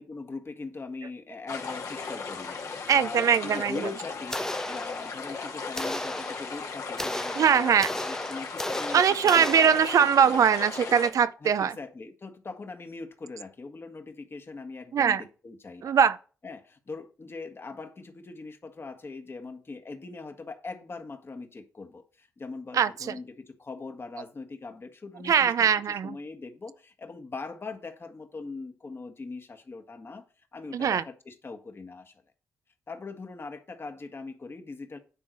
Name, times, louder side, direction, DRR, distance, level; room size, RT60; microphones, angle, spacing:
voice 1, 0.0-9.9 10.2-10.4 11.4-15.9 16.4-30.2 30.5-32.1 32.9-35.0, left 3 dB, 40° left, 1.6 m, -41 dB
sound 1, 1.5-11.1, left 4 dB, 65° left, 1.7 m, -37 dB
voice 2, 2.9-3.8 7.4-7.9 8.9-11.7 14.9-15.2 15.8-16.2 22.7-22.9 25.3-26.2 30.7-31.0, right 7 dB, 65° right, 0.6 m, -21 dB
sound 2, 4.3-5.4 5.8-10.3, left 1 dB, 10° left, 0.5 m, -35 dB
9.7 x 3.8 x 6.3 m
supercardioid pair, 50°, 6 cm